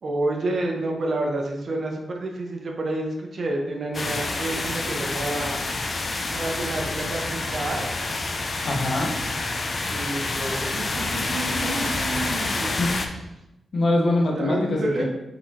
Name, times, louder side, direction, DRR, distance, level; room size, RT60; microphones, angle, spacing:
voice 1, 0.0-5.6 6.3-8.0 9.9-12.8 14.4-15.0, right 2 dB, 55° right, 1 dB, 0.8 m, -29 dB
sound 1, 3.9-13.1, left 2 dB, 40° left, 0.5 m, -28 dB
voice 2, 8.6-9.1 12.8-13.0 13.7-15.0, left 2 dB, 60° left, 0 dB, 1.0 m, -23 dB
4.7 x 3.9 x 2.8 m, 0.90 s
wide cardioid pair, 110°, 0 cm